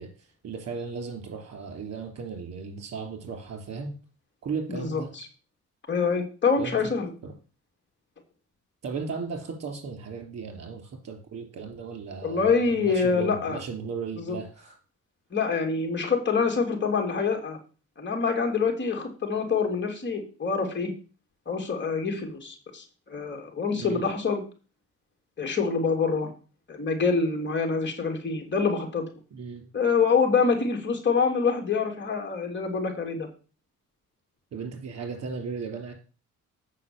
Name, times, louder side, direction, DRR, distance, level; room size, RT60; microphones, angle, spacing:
voice 1, 0.0-3.9 4.4-5.1 6.6-6.9 7.2-7.3 8.8-14.8 23.8-24.0 29.3-29.7 34.5-35.9, right 5 dB, 55° right, 4 dB, 3.3 m, -36 dB
voice 2, 4.7-5.3 5.9-7.1 12.2-13.6 14.2-14.4 15.3-17.6 18.0-20.9 21.5-24.4 25.4-26.3 26.7-29.0 29.7-33.3, left 5 dB, 35° left, 3 dB, 3.1 m, -26 dB
8.3 x 5.6 x 7.2 m, 0.36 s
cardioid pair, 90°, 30 cm